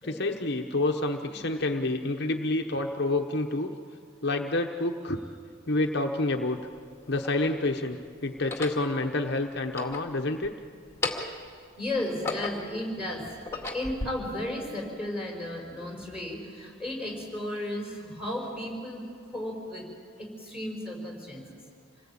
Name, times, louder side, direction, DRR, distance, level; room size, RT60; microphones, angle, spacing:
voice 1, 0.0-3.7 4.2-5.2 5.7-6.6 7.1-10.5, left 2 dB, 55° left, 3 dB, 1.0 m, -28 dB
sound 1, 5.8-5.9 6.8-7.6 8.3-8.9 9.6-10.5 10.9-11.5 11.9-12.8 13.3-14.1, left 3 dB, 15° left, 2.1 m, -35 dB
voice 2, 11.8-13.2 13.7-19.9 20.2-21.4, left 1 dB, 5° right, -1 dB, 5.2 m, -34 dB
27.5 x 19.5 x 8.7 m, 2.2 s
head